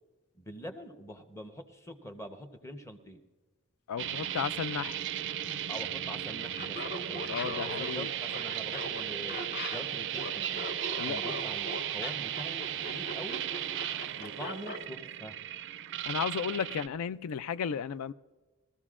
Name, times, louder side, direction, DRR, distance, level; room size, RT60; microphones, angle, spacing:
voice 1, 0.3-3.2 5.7-9.4 9.7-10.7 11.0-13.5 14.2-15.4, equal, 15° left, 0.9 m, -44 dB
voice 2, 3.9-5.0 7.3-8.1 11.0-11.2 16.1-18.1, left 7 dB, 70° left, 0.3 m, -34 dB
sound 1, 4.0-16.9, right 10 dB, 55° right, 0.4 m, -36 dB
Laughter, 6.5-14.8, left 1 dB, 45° left, 1.3 m, -40 dB
22.0 x 14.0 x 2.5 m
head